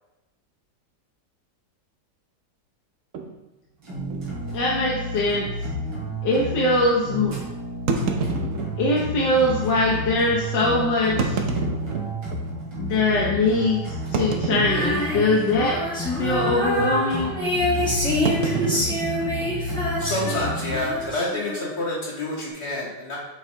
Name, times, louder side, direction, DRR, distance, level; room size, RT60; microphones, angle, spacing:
sound 1, 3.1-3.3 4.1-4.2 4.5-4.6 5.2-5.3 7.9-9.1 9.9-10.0 11.0-12.5 13.0-13.1 14.1-15.2 15.5-15.9 16.1-16.4 18.2-19.9, right 5 dB, 60° right, 1.0 m, -28 dB
sound 2, 3.8-21.0, right 1 dB, 80° right, 2.9 m, -31 dB
voice 1, 4.5-5.5 6.2-7.3 8.0-8.1 8.8-11.4 12.8-15.8 16.2-17.3, left 2 dB, 85° left, -4 dB, 1.7 m, -22 dB
Female singing, 14.6-21.9, left 1 dB, 5° left, 2.1 m, -27 dB
voice 2, 20.0-23.2, left 2 dB, 60° left, -7 dB, 2.9 m, -28 dB
6.5 x 5.5 x 3.8 m, 1.0 s
omnidirectional pair, 1.9 m